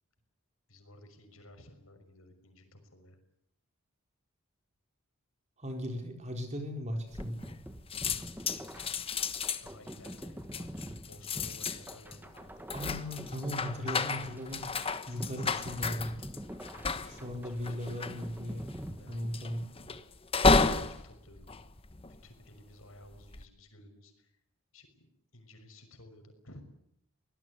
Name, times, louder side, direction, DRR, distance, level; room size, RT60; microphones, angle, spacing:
voice 1, 0.7-3.2 7.9-8.8 9.6-12.7 13.7-14.0 15.1-16.2 16.6-18.0 19.0-19.4 20.6-21.5 22.1-24.4 24.7-26.6, left 1 dB, 70° left, 6 dB, 6.0 m, -55 dB
voice 2, 5.6-7.4 12.7-14.7 15.1-16.1 17.0-18.7 19.1-19.6, equal, 30° right, 5 dB, 4.3 m, -37 dB
sound 1, 7.1-7.7 7.9-22.5 23.0-23.4, left 4 dB, 25° left, 1.2 m, -32 dB
sound 2, 7.2-19.7, equal, 10° right, 1.8 m, -46 dB
25.0 x 19.0 x 9.7 m, 0.73 s
head